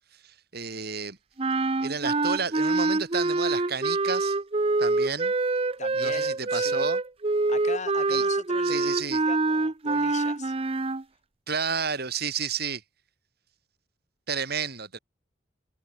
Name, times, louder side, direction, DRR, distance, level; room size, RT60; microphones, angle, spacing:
voice 1, 0.2-1.2 1.8-4.4 4.8-5.3 5.9-7.0 8.1-8.2 8.6-9.2 11.5-12.8 14.3-15.0, right 5 dB, 55° right, 2.8 m, -31 dB
sound 1, 1.4-11.0, right 3 dB, 30° right, 0.8 m, -25 dB
voice 2, 5.8-6.9 7.5-9.0 9.3-10.5, left 4 dB, 40° left, 2.5 m, -40 dB
head